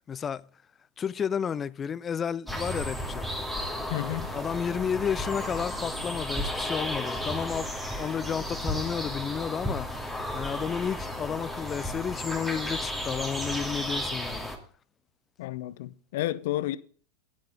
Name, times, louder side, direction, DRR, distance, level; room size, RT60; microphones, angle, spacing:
voice 1, 0.1-0.5 1.0-3.3 4.3-7.7 7.9-9.9 10.3-14.5, left 7 dB, 25° left, 0.4 m, -31 dB
sound 1, 2.5-14.6, left 1 dB, ahead, 2.4 m, -33 dB
voice 2, 3.9-4.3 15.4-16.8, left 15 dB, 60° left, 0.7 m, -31 dB
9.6 x 8.2 x 5.3 m
hypercardioid pair, 90°, 0 cm